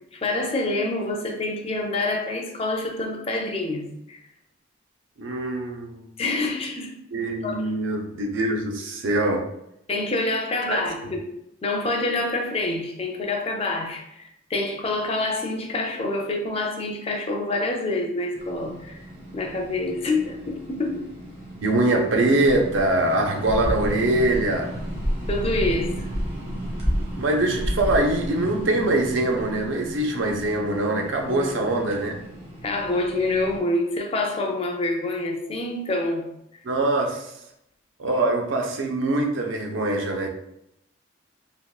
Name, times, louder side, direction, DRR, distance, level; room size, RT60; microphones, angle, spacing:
voice 1, 0.2-4.2 6.2-6.9 7.4-7.7 9.9-11.2 11.6-19.0 19.3-21.0 25.3-26.1 31.3-31.6 32.6-36.3, left 2 dB, 30° left, 2 dB, 0.4 m, -27 dB
voice 2, 5.2-6.1 7.1-9.4 10.7-10.8 21.6-24.7 27.2-32.2 36.6-37.3 38.0-40.3, right 2 dB, 85° right, 2 dB, 0.5 m, -23 dB
sound 1, 18.4-33.6, equal, 35° right, 0.8 m, -32 dB
3.5 x 2.2 x 2.3 m, 0.79 s
head